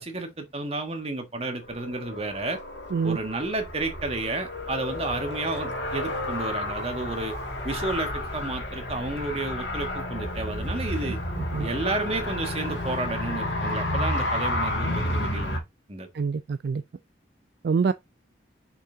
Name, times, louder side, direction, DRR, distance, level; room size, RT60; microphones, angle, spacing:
voice 1, 0.0-2.6 3.0-7.3 7.6-11.2 11.6-15.6 15.9-16.1, right 2 dB, 35° right, 1.7 m, -31 dB
Car, 1.6-15.6, left 1 dB, 80° left, 2.3 m, -31 dB
voice 2, 16.1-16.8 17.6-17.9, right 5 dB, 60° right, 0.3 m, -25 dB
6.5 x 5.5 x 3.5 m
head